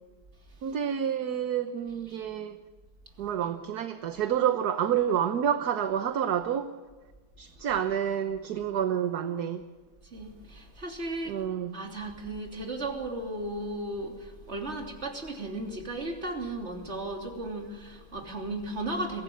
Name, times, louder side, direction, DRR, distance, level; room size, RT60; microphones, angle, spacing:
voice 1, 0.6-2.6 3.2-6.7 7.4-9.6 11.3-11.8, right 9 dB, 60° right, 1.3 m, -29 dB
voice 2, 10.0-11.4 11.7-19.2, right 2 dB, 30° right, 3.4 m, -35 dB
23.0 x 17.0 x 8.6 m
omnidirectional pair, 2.2 m